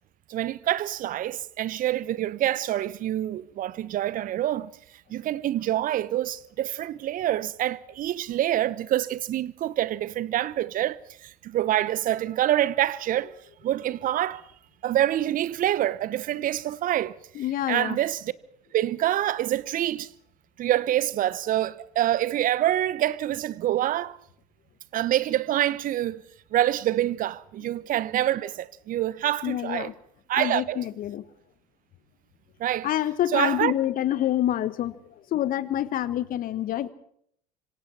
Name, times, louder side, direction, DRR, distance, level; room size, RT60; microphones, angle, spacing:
voice 1, 0.3-4.7 5.1-13.3 13.6-14.5 14.8-18.3 18.7-20.1 20.6-24.2 24.9-26.2 26.5-29.9 30.3-30.8 32.6-32.9 33.3-33.7, right 13 dB, 45° right, 0.9 m, -26 dB
voice 2, 17.3-18.0 29.4-29.9 30.4-31.2 32.8-35.0 35.3-36.9, left 12 dB, 45° left, 1.3 m, -27 dB
26.0 x 25.0 x 4.4 m
figure-of-eight pair, 65°, 20 cm